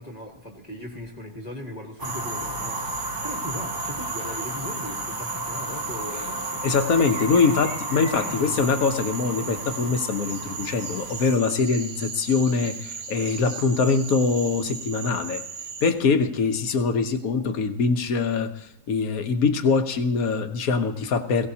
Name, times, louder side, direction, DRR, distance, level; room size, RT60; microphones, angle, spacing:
voice 1, 0.0-6.7 8.0-8.6, left 1 dB, 25° left, 1 dB, 1.5 m, -38 dB
sound 1, 2.0-11.4, right 1 dB, 15° right, 1.0 m, -33 dB
Frog, 2.0-15.9, right 5 dB, 50° right, 1.1 m, -37 dB
sound 2, 5.4-14.7, right 2 dB, 70° right, 2.5 m, -48 dB
voice 2, 6.6-15.4 15.8-21.5, left 4 dB, 60° left, 7 dB, 1.4 m, -23 dB
21.0 x 16.5 x 2.8 m, 0.93 s
omnidirectional pair, 1.8 m